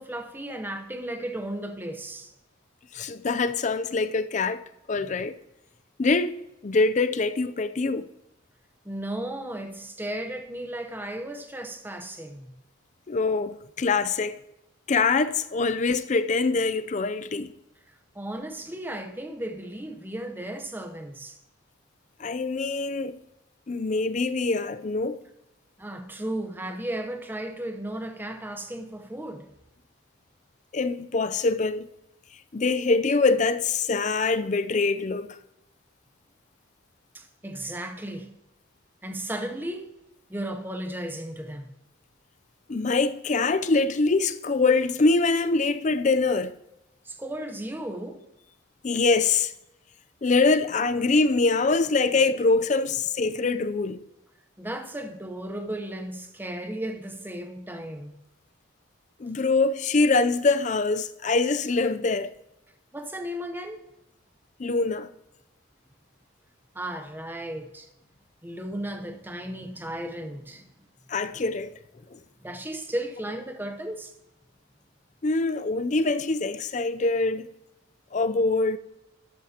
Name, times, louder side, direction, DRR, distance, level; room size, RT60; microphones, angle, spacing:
voice 1, 0.0-2.3 4.9-5.1 8.8-12.4 18.1-21.4 25.8-29.5 37.1-38.3 39.0-39.9 40.3-41.7 47.0-48.3 54.6-58.2 62.9-63.8 66.7-67.9 68.4-70.7 72.4-74.1, right 1 dB, 10° right, 0.8 m, -35 dB
voice 2, 2.9-4.6 4.9-5.3 6.0-6.4 6.6-8.1 13.1-14.3 14.9-17.5 22.2-23.2 23.7-25.2 30.7-31.9 32.5-35.3 42.7-46.5 48.8-49.5 50.2-54.0 59.2-62.3 64.6-65.1 71.1-71.7 72.1-72.2 75.2-77.5 78.1-78.8, left 3 dB, 35° left, 0.4 m, -24 dB
12.5 x 12.5 x 2.9 m
head